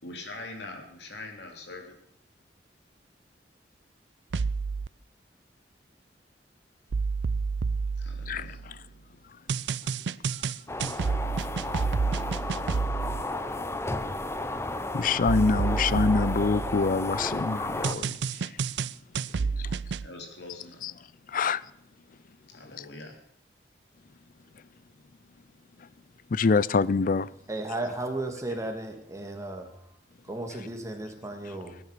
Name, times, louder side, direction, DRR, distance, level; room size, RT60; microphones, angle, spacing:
voice 1, 0.0-1.9 8.0-8.6 19.3-20.8 22.5-23.1, left 2 dB, 75° left, 3.3 m, -43 dB
sound 1, 4.3-4.9 6.9-8.8 9.5-13.2 15.3-17.1 17.8-20.1, right 5 dB, 80° right, 0.5 m, -29 dB
sound 2, 10.7-17.9, left 2 dB, 15° left, 0.8 m, -33 dB
voice 2, 14.9-18.2 20.8-20.9 21.3-21.6 26.3-27.3, left 4 dB, 50° left, 0.5 m, -25 dB
voice 3, 27.5-30.0 30.2-31.8, right 2 dB, 20° right, 2.3 m, -35 dB
18.0 x 9.7 x 6.7 m
head